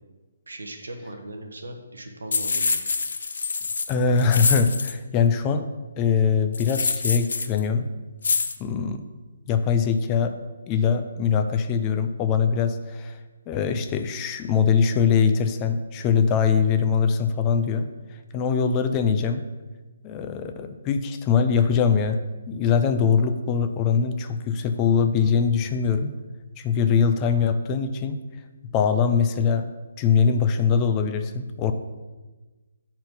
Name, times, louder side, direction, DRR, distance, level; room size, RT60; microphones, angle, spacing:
voice 1, 0.5-2.8, right 1 dB, 90° right, 4 dB, 1.3 m, -38 dB
sound 1, 2.3-4.9 6.5-7.6 8.2-8.6, left 4 dB, 70° left, 0.6 m, -26 dB
voice 2, 3.9-5.7 6.0-7.9 8.6-9.0 9.5-10.3 10.7-13.2 13.5-17.9 18.3-19.4 20.0-22.2 22.5-26.1 26.6-28.2 28.7-29.6 30.0-31.7, left 6 dB, 20° left, 8 dB, 0.5 m, -22 dB
7.7 x 4.4 x 5.3 m, 1.2 s
hypercardioid pair, 155°, 0 cm